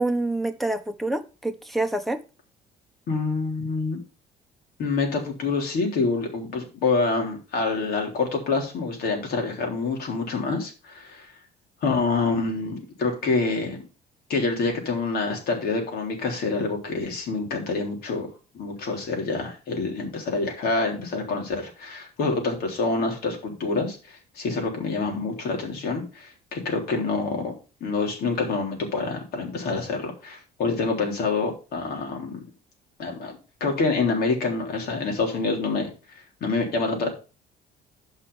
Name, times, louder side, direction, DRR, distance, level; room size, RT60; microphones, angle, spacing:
voice 1, 0.0-2.2, right 2 dB, ahead, 9 dB, 1.2 m, -26 dB
voice 2, 3.1-4.0 4.8-11.3 11.8-13.8 14.3-18.3 18.5-27.5 27.8-32.4 33.0-35.9 36.1-37.1, left 3 dB, 65° left, 1 dB, 3.7 m, -27 dB
9.0 x 5.6 x 5.5 m, 0.33 s
cardioid pair, 110°, 17 cm